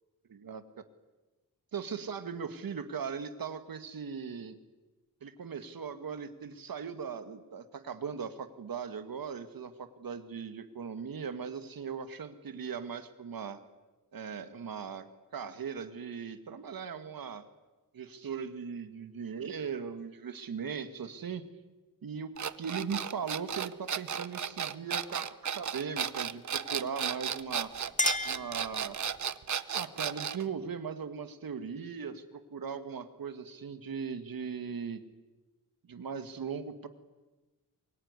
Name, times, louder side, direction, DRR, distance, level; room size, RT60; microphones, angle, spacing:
voice 1, 1.7-4.6 5.2-13.6 14.1-15.1 15.3-17.5 17.9-21.5 22.0-27.7 28.2-29.0 29.7-35.0 35.9-36.9, right 6 dB, 70° right, 10 dB, 2.0 m, -39 dB
sound 1, 22.4-30.4, right 8 dB, 55° right, 0.9 m, -34 dB
Chink clink, 27.4-29.3, left 2 dB, 20° left, 1.8 m, -34 dB
25.0 x 22.5 x 9.8 m, 1.2 s
wide cardioid pair, 140°, 36 cm